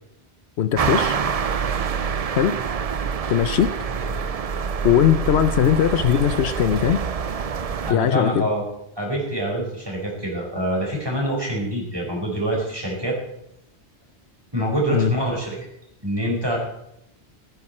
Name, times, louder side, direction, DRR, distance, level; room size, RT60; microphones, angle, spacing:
voice 1, 0.6-1.2 2.3-2.6 3.3-3.7 4.8-7.0 7.9-8.5 14.9-15.1, left 10 dB, 75° left, 12 dB, 0.9 m, -19 dB
sound 1, 0.8-7.9, right 6 dB, 45° right, 0.5 m, -26 dB
voice 2, 7.8-8.6 9.0-13.2 14.5-15.6 16.0-16.6, right 1 dB, 20° right, -2 dB, 4.7 m, -25 dB
15.0 x 13.5 x 4.3 m, 0.79 s
omnidirectional pair, 1.1 m